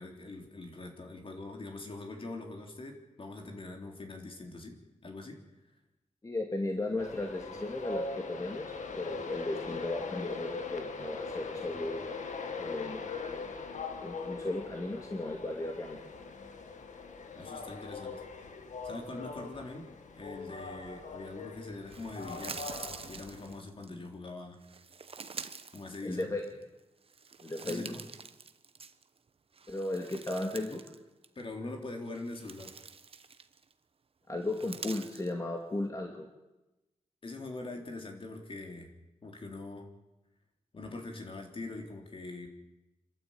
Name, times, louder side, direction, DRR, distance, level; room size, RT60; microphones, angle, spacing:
voice 1, 0.0-5.4 17.3-18.3 18.8-22.7 23.1-24.6 25.7-26.3 27.6-28.0 31.3-32.8 37.2-38.9 39.2-39.9 40.7-42.5, left 2 dB, 45° left, 3 dB, 3.6 m, -43 dB
voice 2, 6.2-8.7 9.0-12.1 12.6-13.0 13.3-13.7 14.0-16.0 26.0-26.5 27.4-27.9 29.7-30.8 34.3-36.3, left 2 dB, 25° left, 2 dB, 2.3 m, -35 dB
Train, 7.0-23.6, left 4 dB, 85° left, 1.9 m, -41 dB
sound 1, 21.9-23.9 24.6-26.6 27.0-29.2 29.5-31.0 31.2-31.4 32.0-33.7 34.4-35.3, right 5 dB, 50° right, 1.0 m, -46 dB
27.0 x 13.0 x 8.8 m, 1.0 s
wide cardioid pair, 115°, 12 cm